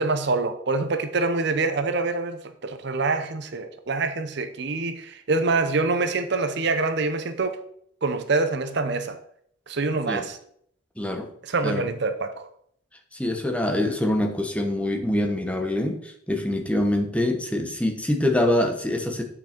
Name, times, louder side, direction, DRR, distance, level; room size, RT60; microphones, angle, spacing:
voice 1, 0.0-7.6 8.0-9.2 9.7-10.4 11.4-12.5, right 3 dB, 55° right, 0.7 m, -25 dB
voice 2, 11.0-11.3 11.6-11.9 13.1-19.2, left 1 dB, 5° left, 1.0 m, -25 dB
9.3 x 5.9 x 4.4 m
head